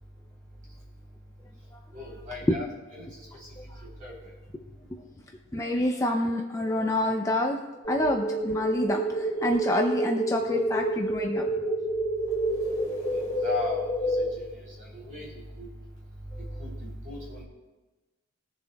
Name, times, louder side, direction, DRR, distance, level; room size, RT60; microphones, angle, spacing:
voice 1, 1.9-2.6 2.9-3.5 3.8-4.1 13.4-15.7 16.6-17.4, left 2 dB, 35° right, -6 dB, 3.7 m, -38 dB
voice 2, 5.5-7.6 7.9-11.5, left 1 dB, 15° left, 2 dB, 0.5 m, -27 dB
sound 1, 7.8-14.3, right 1 dB, 30° left, 2.5 m, -29 dB
20.5 x 7.1 x 2.3 m, 1.2 s
head